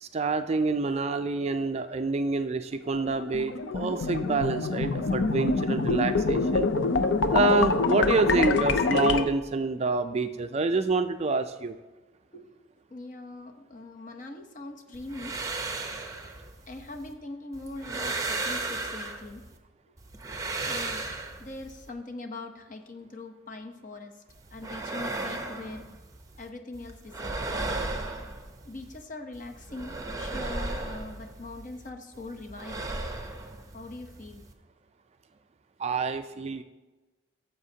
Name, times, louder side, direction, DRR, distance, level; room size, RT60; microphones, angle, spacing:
voice 1, 0.0-6.7 7.3-11.7 35.8-36.6, right 3 dB, 35° right, 9 dB, 0.4 m, -27 dB
sound 1, 2.9-9.2, left 4 dB, 70° left, 0.6 m, -26 dB
voice 2, 12.9-15.3 16.7-19.4 20.6-21.0 21.4-24.1 24.5-25.8 26.4-27.6 28.7-32.9 33.7-34.4, left 2 dB, 40° left, 5 dB, 0.9 m, -42 dB
sound 2, 14.9-17.1 17.5-19.6 20.0-21.9 24.3-26.5 26.7-29.0 29.3-31.9 32.1-34.5, right 2 dB, 15° right, 0.7 m, -35 dB
15.0 x 7.0 x 2.8 m, 1.2 s
head